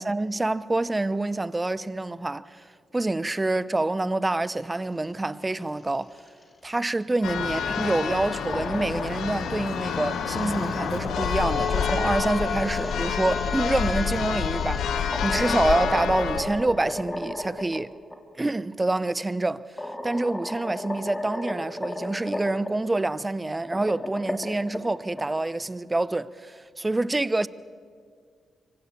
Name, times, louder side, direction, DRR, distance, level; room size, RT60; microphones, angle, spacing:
voice 1, 0.0-2.6 2.9-6.1 6.6-18.0 18.4-19.7 20.0-27.5, right 2 dB, 25° right, 0.9 m, -27 dB
sound 1, 4.6-15.4, left 3 dB, 40° left, 2.9 m, -44 dB
Church bell, 7.2-16.4, left 7 dB, 75° left, 1.9 m, -28 dB
sound 2, 8.3-9.4 10.5-13.4 15.0-17.8 18.1-18.2 19.2-19.3 19.8-22.7 23.5-25.2, left 1 dB, 20° left, 3.4 m, -34 dB
25.0 x 24.5 x 7.0 m
supercardioid pair, 45°, 0 cm